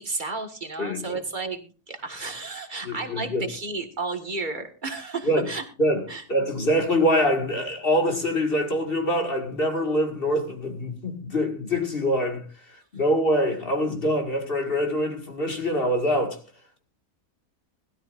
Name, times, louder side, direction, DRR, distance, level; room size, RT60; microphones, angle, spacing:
voice 1, 0.0-5.6 6.1-6.2, right 3 dB, 30° right, 1.8 m, -32 dB
voice 2, 0.8-1.2 2.8-3.5 5.3-5.5 5.8-6.0 6.3-12.4 12.9-16.4, equal, 35° left, 2.1 m, -24 dB
21.0 x 13.0 x 2.5 m
omnidirectional pair, 1.8 m